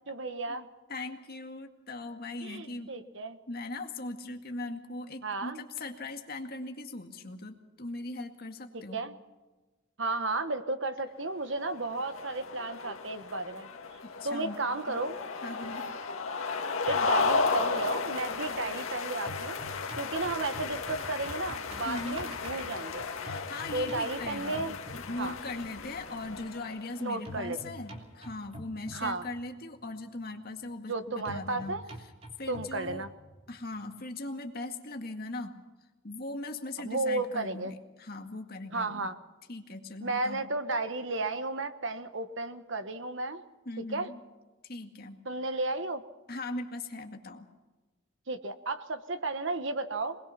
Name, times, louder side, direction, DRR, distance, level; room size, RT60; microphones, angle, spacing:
voice 1, 0.1-0.7 2.4-3.4 5.2-5.6 8.9-9.1 10.0-13.7 14.2-15.1 16.8-19.6 20.0-23.0 23.7-24.8 25.2-25.3 27.0-27.6 28.9-29.2 30.9-31.8 32.5-33.1 36.8-37.7 38.7-39.1 40.0-43.4 43.9-44.1 45.2-46.0 48.3-50.2, right 2 dB, 60° right, 10 dB, 1.3 m, -33 dB
voice 2, 0.9-2.9 3.5-9.0 14.2-14.6 14.9-15.0 15.4-15.9 21.9-22.2 23.2-31.8 32.4-33.1 33.5-35.5 36.0-39.1 39.5-40.4 43.7-44.2 44.6-45.2 46.3-47.5, left 2 dB, 45° left, 4 dB, 2.0 m, -39 dB
sound 1, 11.5-27.2, left 4 dB, 80° left, 1.9 m, -35 dB
sound 2, 16.8-18.8 19.1-25.6 27.3-29.6 31.3-33.6, equal, 30° right, 3.2 m, -46 dB
23.5 x 20.5 x 5.9 m, 1.2 s
head